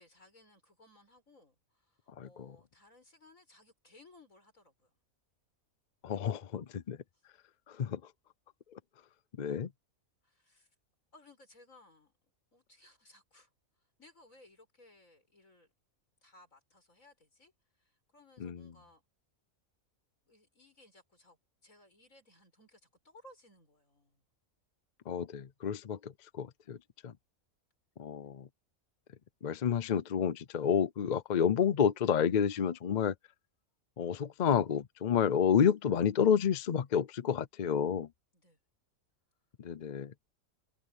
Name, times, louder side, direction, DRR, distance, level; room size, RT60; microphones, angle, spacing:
voice 1, 0.0-4.9 7.1-7.2 10.2-10.7 11.1-12.1 12.5-13.5 14.0-15.7 16.2-17.5 17.8-19.0 20.3-24.2 38.3-38.6, left 1 dB, 65° left, 7.2 m, -61 dB
voice 2, 6.0-7.0 7.8-8.0 9.4-9.7 18.4-18.6 25.1-26.8 27.0-27.1 28.0-28.5 29.4-33.1 34.0-38.1 39.6-40.1, left 7 dB, 50° left, 0.5 m, -30 dB
omnidirectional pair, 1.5 m